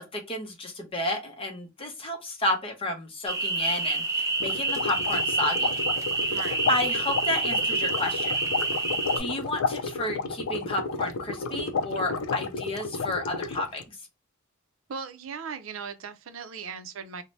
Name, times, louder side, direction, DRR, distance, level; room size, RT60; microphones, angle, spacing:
voice 1, 0.0-5.8 6.2-8.3 8.7-8.9 9.2-14.0, left 1 dB, 25° left, 0.6 m, -31 dB
sound 1, 3.3-9.2, right 3 dB, 15° right, 0.6 m, -28 dB
sound 2, 4.4-13.8, left 4 dB, 80° left, 0.4 m, -32 dB
voice 2, 6.3-6.7 14.9-17.2, right 6 dB, 70° right, 0.5 m, -38 dB
2.6 x 2.1 x 3.1 m
head